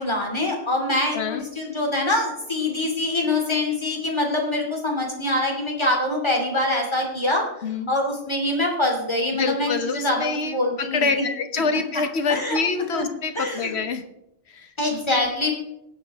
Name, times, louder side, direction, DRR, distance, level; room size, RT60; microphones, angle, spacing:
voice 1, 0.0-7.4 7.9-11.2 11.7-11.8 12.3-12.6 12.9-13.0 13.3-13.7 14.8-15.5, left 1 dB, 25° left, 1 dB, 2.8 m, -24 dB
voice 2, 1.1-1.4 7.6-7.9 9.3-14.0 14.5-14.7, left 4 dB, 80° left, 8 dB, 1.3 m, -26 dB
18.5 x 7.6 x 3.5 m, 0.81 s
omnidirectional pair, 1.1 m